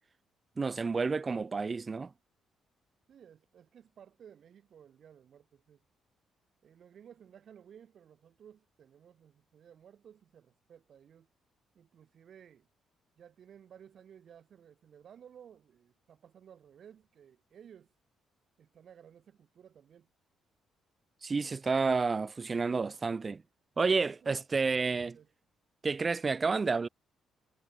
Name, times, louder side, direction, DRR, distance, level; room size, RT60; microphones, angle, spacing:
voice 1, 0.6-2.1 21.2-23.4 23.8-25.2 25.8-26.9, right 4 dB, 30° right, 1.7 m, -30 dB
voice 2, 3.1-5.8 6.6-11.3 11.7-12.7 13.2-17.9 18.6-20.1 24.0-25.3, right 8 dB, 60° right, 6.9 m, -56 dB
cardioid pair, 90°, 0 cm